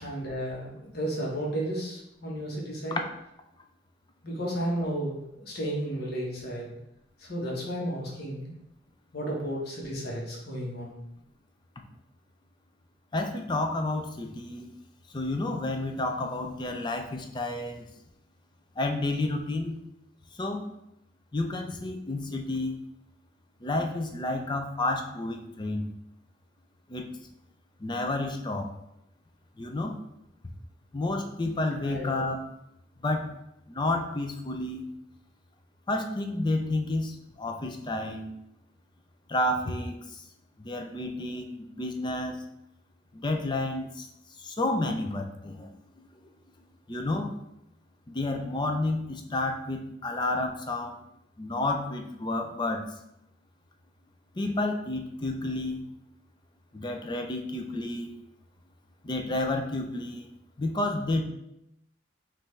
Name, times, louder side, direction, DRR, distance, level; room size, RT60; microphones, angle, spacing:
voice 1, 0.0-3.0 4.2-6.7 7.2-8.5 9.1-11.0 31.8-32.2, right 1 dB, 55° left, -2 dB, 1.2 m, -33 dB
voice 2, 13.1-14.7 15.1-17.9 18.8-19.8 20.4-20.6 21.3-22.7 23.6-25.9 26.9-27.1 27.8-28.7 29.6-30.0 30.9-32.4 33.0-33.3 33.7-34.8 35.9-38.3 39.3-40.2 40.6-42.4 43.1-44.1 44.4-45.7 46.0-46.1 46.9-47.3 48.1-51.0 51.4-52.8 54.4-55.8 56.7-58.1 59.0-60.3 60.6-61.2, left 2 dB, 25° left, 4 dB, 0.5 m, -30 dB
5.3 x 2.7 x 3.2 m, 0.83 s
head